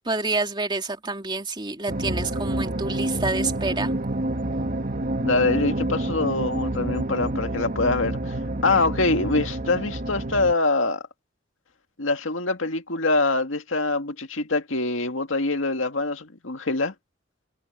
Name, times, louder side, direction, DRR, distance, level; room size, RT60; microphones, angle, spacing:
voice 1, 0.0-3.9, right 3 dB, 25° right, 3.2 m, -28 dB
sound 1, 1.9-10.5, right 1 dB, 45° right, 2.2 m, -28 dB
voice 2, 5.2-8.3 8.6-11.0 12.0-16.9, left 3 dB, 85° left, 2.1 m, -24 dB
head